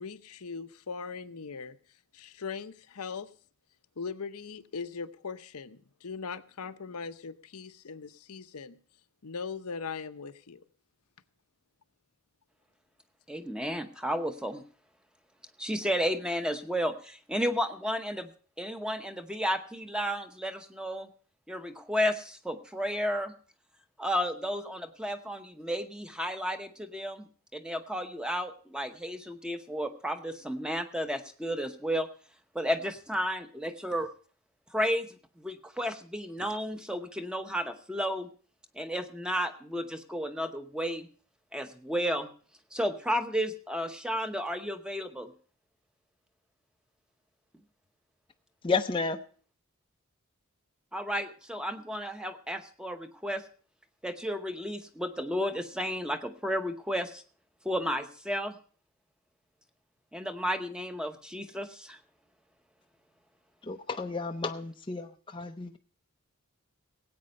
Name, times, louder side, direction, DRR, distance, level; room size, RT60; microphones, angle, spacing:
voice 1, 0.0-1.8 2.1-3.3 4.0-8.8 9.2-10.6, left 5 dB, 85° left, 0.8 m, -40 dB
voice 2, 13.3-14.6 15.6-18.3 18.6-21.1 21.5-23.3 24.0-27.2 27.5-32.1 32.5-34.1 34.7-35.1 35.4-38.3 38.7-41.1 41.5-42.3 42.7-45.3 50.9-53.4 54.0-57.2 57.6-58.5 60.1-62.0, equal, 5° right, 0.8 m, -32 dB
voice 3, 48.6-49.2 63.6-65.8, left 4 dB, 20° left, 0.5 m, -32 dB
17.5 x 8.8 x 5.3 m
head